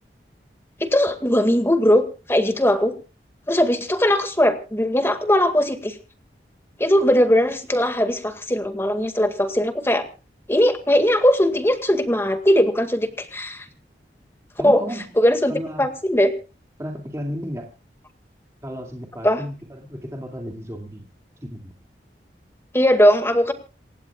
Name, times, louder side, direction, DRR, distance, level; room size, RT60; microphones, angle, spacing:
voice 1, 0.8-2.9 3.5-6.0 6.8-10.0 10.5-13.7 14.6-14.8 15.2-15.5 15.8-16.3 19.2-19.4 22.7-23.5, equal, 15° left, 7 dB, 1.9 m, -19 dB
voice 2, 14.6-15.0 15.5-15.9 16.8-17.7 18.6-21.1 21.4-21.7, equal, 20° right, 1 dB, 2.3 m, -33 dB
27.5 x 15.5 x 2.4 m, 0.34 s
head